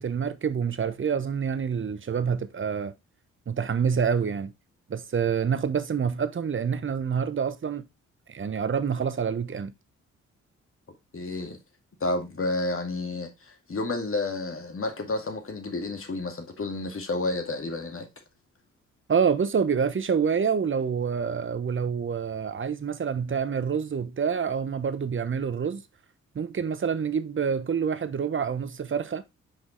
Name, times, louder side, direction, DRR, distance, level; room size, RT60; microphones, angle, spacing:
voice 1, 0.0-2.9 3.5-4.5 4.9-7.9 8.3-9.7 19.1-25.8 26.3-29.2, right 6 dB, 40° right, 0.9 m, -27 dB
voice 2, 11.1-11.6 12.0-18.1, left 2 dB, 45° left, 2.0 m, -30 dB
5.9 x 5.1 x 3.2 m
supercardioid pair, 50°, 31 cm